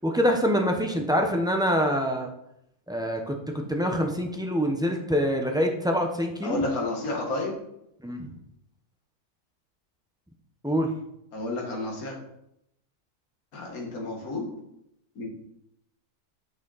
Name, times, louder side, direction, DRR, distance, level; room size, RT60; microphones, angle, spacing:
voice 1, 0.0-2.3 2.9-6.6 8.0-8.3 10.6-10.9, equal, 5° right, 2 dB, 0.7 m, -25 dB
voice 2, 6.4-7.6 11.3-12.2 13.5-14.5 15.2-15.3, left 2 dB, 65° left, 0 dB, 2.0 m, -30 dB
10.0 x 6.3 x 4.1 m, 0.80 s
omnidirectional pair, 1.7 m